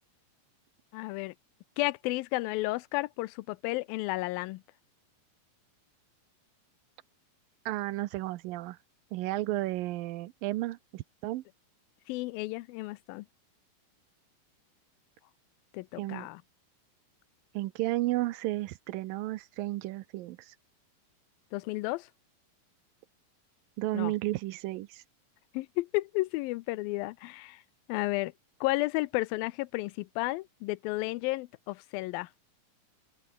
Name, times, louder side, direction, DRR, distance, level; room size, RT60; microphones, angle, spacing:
voice 1, 0.9-1.3 1.8-4.6 12.1-13.3 15.7-16.4 21.5-22.1 23.9-24.1 25.5-27.6 27.9-28.3 28.6-32.3, left 20 dB, 85° left, 2.4 m, -32 dB
voice 2, 7.7-8.8 9.1-11.4 16.0-16.3 17.5-20.6 23.8-25.0, right 17 dB, 80° right, 2.5 m, -33 dB
open air
omnidirectional pair, 4.1 m